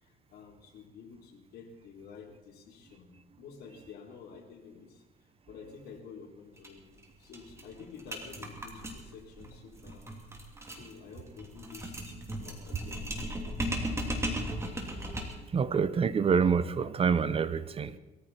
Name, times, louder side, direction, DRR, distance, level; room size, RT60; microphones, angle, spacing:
voice 1, 0.0-5.0 5.5-10.0 10.7-12.2 12.4-13.1 17.5-18.0, left 6 dB, 70° left, 4.0 m, -50 dB
sound 1, 6.6-6.7 7.0-7.1 7.3-15.5, equal, 15° right, 3.0 m, -37 dB
voice 2, 15.5-17.9, right 6 dB, 35° right, 0.9 m, -26 dB
22.0 x 14.5 x 4.4 m
cardioid pair, 110°, 17 cm